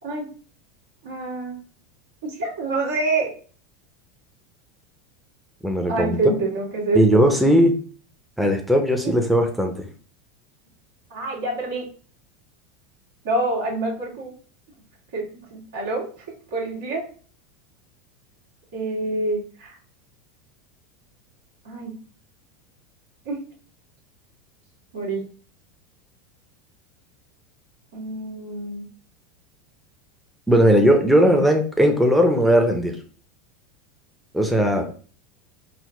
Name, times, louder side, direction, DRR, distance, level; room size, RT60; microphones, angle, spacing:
voice 1, 1.0-1.6 2.2-3.3 5.9-7.2 9.0-9.2 11.1-11.9 13.2-14.3 15.1-16.0 16.5-17.0 18.7-19.8 21.6-21.9 23.2-23.4 24.9-25.2 27.9-28.8 31.1-31.4, right 2 dB, 75° right, -3 dB, 1.5 m, -26 dB
voice 2, 5.6-6.3 6.9-7.8 8.4-9.9 30.5-33.0 34.3-34.8, equal, ahead, 3 dB, 0.6 m, -18 dB
4.0 x 2.1 x 3.0 m, 0.41 s
hypercardioid pair, 95°, 0 cm